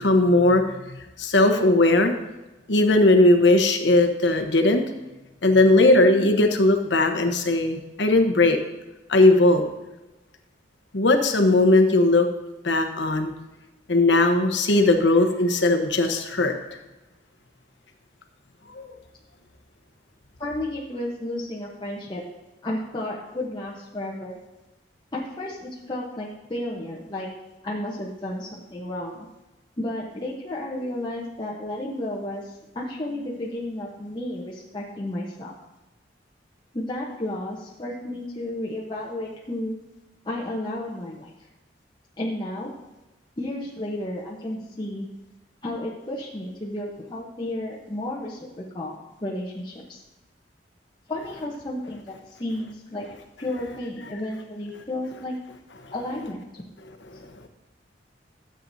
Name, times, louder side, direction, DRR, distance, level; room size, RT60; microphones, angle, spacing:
voice 1, 0.0-2.1 2.7-4.8 5.4-8.6 9.1-9.6 10.9-12.3 12.6-13.3 13.9-16.5 18.7-18.9 55.8-55.9 57.1-57.5, left 2 dB, 75° left, 5 dB, 1.0 m, -19 dB
voice 2, 20.4-22.2 22.6-24.4 25.1-27.3 27.6-29.2 29.8-35.5 36.7-39.7 40.2-41.3 42.2-42.7 43.4-45.1 45.6-50.0 51.1-53.1 53.4-55.4 55.9-56.6, left 1 dB, 25° left, -4 dB, 1.0 m, -32 dB
13.0 x 7.7 x 2.7 m, 1.1 s
head